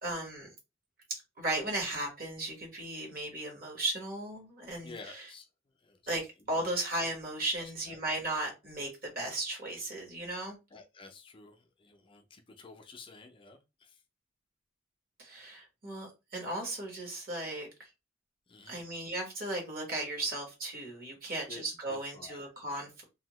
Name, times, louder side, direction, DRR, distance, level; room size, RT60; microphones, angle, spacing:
voice 1, 0.0-0.5 1.4-5.3 6.1-10.6 15.2-17.9 18.7-23.0, right 2 dB, 50° right, 1.4 m, -36 dB
voice 2, 4.8-5.4 5.8-6.0 6.5-6.6 7.9-8.0 10.7-14.0 18.5-18.8 21.5-21.6 21.9-22.4, left 3 dB, 25° left, 0.4 m, -50 dB
2.7 x 2.7 x 2.9 m
head